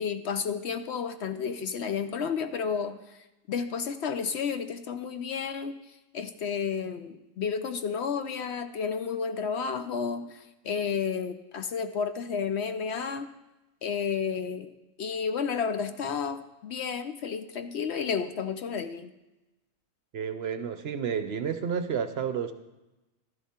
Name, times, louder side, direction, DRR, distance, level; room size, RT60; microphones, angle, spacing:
voice 1, 0.0-5.7 6.1-13.3 13.8-14.7 15.0-19.1, left 6 dB, 60° left, 9 dB, 0.8 m, -31 dB
voice 2, 20.1-22.5, right 7 dB, 60° right, 10 dB, 0.8 m, -31 dB
12.0 x 11.0 x 4.3 m, 1.0 s
omnidirectional pair, 1.4 m